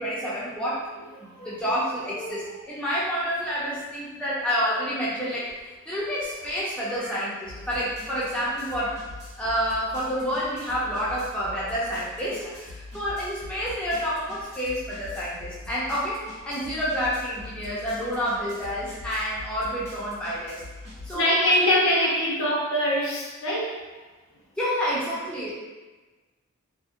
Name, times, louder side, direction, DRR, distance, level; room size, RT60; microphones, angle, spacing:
voice 1, 0.0-0.8 1.2-8.9 9.4-20.6 21.0-21.3 24.6-25.5, equal, 5° left, -9 dB, 0.4 m, -29 dB
voice 2, 1.0-1.8 2.1-2.6 7.0-7.3 21.1-23.8 25.3-25.4, equal, 75° left, -4 dB, 0.6 m, -25 dB
sound 1, 5.5-5.6 6.0-21.1, left 2 dB, 50° right, 0.8 m, -43 dB
2.6 x 2.0 x 2.5 m, 1.2 s
head